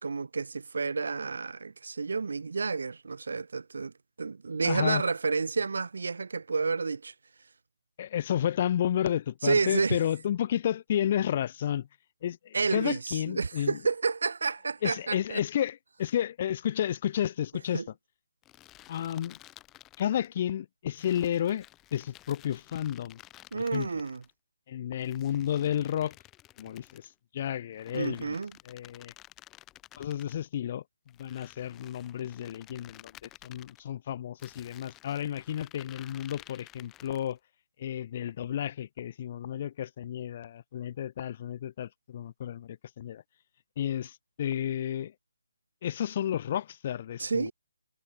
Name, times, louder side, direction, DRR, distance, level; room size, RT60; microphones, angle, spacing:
voice 1, 0.0-7.1 9.4-10.0 12.5-15.4 17.7-17.9 23.5-24.2 27.9-28.5 47.2-47.5, right 4 dB, 70° right, 3.4 m, -30 dB
voice 2, 4.6-5.0 8.0-11.9 12.2-13.8 14.8-17.8 18.9-19.4 20.0-21.6 21.9-23.2 23.5-23.9 24.7-26.2 26.6-28.4 28.7-29.1 30.0-30.8 31.2-37.4 37.8-43.2 43.8-45.1 45.8-47.5, left 10 dB, 35° left, 3.1 m, -31 dB
sound 1, 18.4-20.3 20.9-24.3 25.0-27.1 27.7-30.4 31.1-33.8 34.4-37.4, left 15 dB, 15° left, 3.7 m, -53 dB
hypercardioid pair, 155°, 0 cm